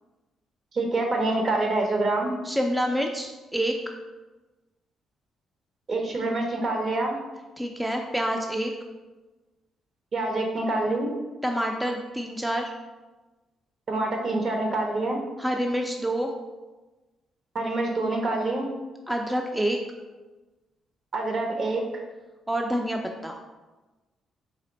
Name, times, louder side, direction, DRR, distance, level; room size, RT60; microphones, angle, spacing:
voice 1, 0.7-2.3 5.9-7.2 10.1-11.1 13.9-15.2 17.5-18.7 21.1-22.0, right 2 dB, 50° right, 2 dB, 0.8 m, -26 dB
voice 2, 2.4-3.7 7.6-8.7 11.4-12.7 15.4-16.3 19.1-19.8 22.5-23.4, equal, 5° right, 2 dB, 0.3 m, -27 dB
4.1 x 2.5 x 4.0 m, 1.2 s
cardioid pair, 90°, 0 cm